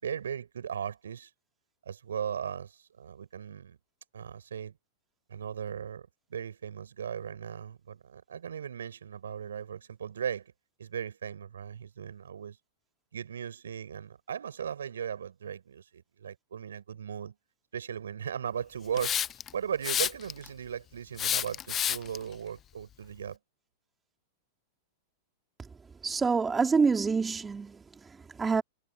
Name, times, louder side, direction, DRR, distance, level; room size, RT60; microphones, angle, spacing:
voice 1, 0.0-1.3 1.9-3.8 4.1-4.7 5.3-10.5 10.8-12.6 13.1-17.3 17.7-19.2 19.5-23.4, right 8 dB, 80° right, 7.1 m, -37 dB
Hiss, 19.0-19.5 19.8-20.5 21.2-22.2, left 10 dB, 30° left, 0.6 m, -29 dB
voice 2, 26.0-28.6, right 5 dB, 15° right, 4.4 m, -27 dB
hypercardioid pair, 110°, 0 cm